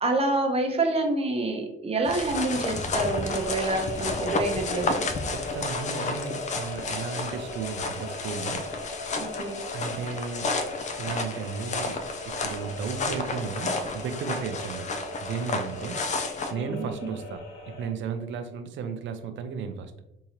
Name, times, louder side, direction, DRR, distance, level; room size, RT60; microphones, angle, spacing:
voice 1, 0.0-5.1 9.2-9.6 16.6-16.9, right 2 dB, 30° right, 3 dB, 0.8 m, -27 dB
sound 1, 2.0-16.5, left 3 dB, 35° left, 0.4 m, -32 dB
sound 2, 3.0-17.9, left 1 dB, 85° left, 0.9 m, -39 dB
voice 2, 5.3-8.7 9.7-10.5 11.0-14.9 15.2-16.0 16.5-19.9, right 6 dB, 70° right, 8 dB, 0.5 m, -34 dB
3.7 x 2.8 x 2.9 m, 0.85 s
cardioid pair, 90°, 20 cm